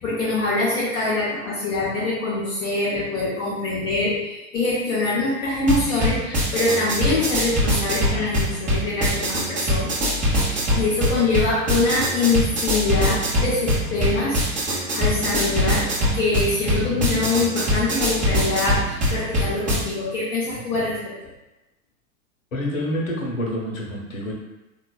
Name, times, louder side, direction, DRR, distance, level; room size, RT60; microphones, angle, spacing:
voice 1, 0.0-9.9 10.2-20.9, left 3 dB, 10° left, -10 dB, 0.4 m, -24 dB
sound 1, 5.6-19.8, equal, 20° right, 0.7 m, -23 dB
voice 2, 22.5-24.3, equal, 65° left, -2 dB, 0.9 m, -27 dB
3.6 x 2.3 x 2.2 m, 0.99 s
figure-of-eight pair, 90°, 42 cm